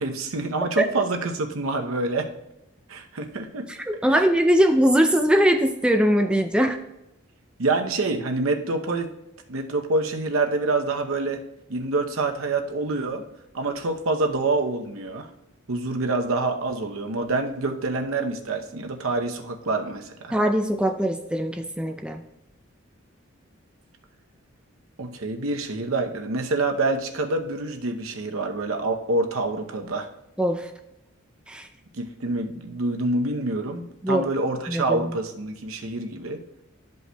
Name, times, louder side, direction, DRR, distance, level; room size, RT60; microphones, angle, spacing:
voice 1, 0.0-2.3 2.9-3.7 4.1-4.2 7.6-9.1 9.5-11.4 11.7-13.2 13.5-15.3 15.7-20.3 25.0-30.1 32.0-36.4, right 2 dB, 80° right, 4 dB, 0.8 m, -26 dB
voice 2, 4.0-6.8 20.3-22.2 30.4-30.7 31.5-31.7 34.0-34.3 34.7-35.1, equal, 5° right, 4 dB, 0.4 m, -21 dB
12.5 x 5.3 x 2.3 m, 0.89 s
head